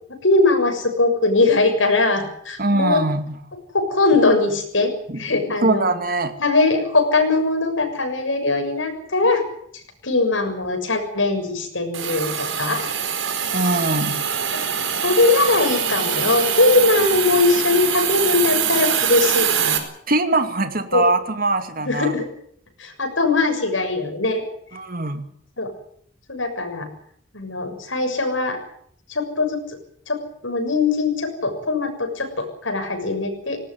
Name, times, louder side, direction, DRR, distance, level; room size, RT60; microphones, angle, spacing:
voice 1, 0.2-3.0 3.7-5.9 6.4-9.4 10.0-12.9 15.0-19.8 20.9-21.0 21.9-22.3 22.8-24.4 25.6-25.7 26.3-26.9 27.3-28.6 29.1-29.6 30.1-30.2 30.4-33.6, left 3 dB, 80° left, 6.9 m, -20 dB
voice 2, 2.6-3.4 5.1-5.2 5.6-6.3 13.5-14.2 20.1-22.2 24.7-25.3, right 2 dB, 50° right, 2.5 m, -22 dB
Hiss, 11.9-19.8, right 8 dB, 85° right, 4.4 m, -23 dB
19.0 x 18.5 x 9.8 m
head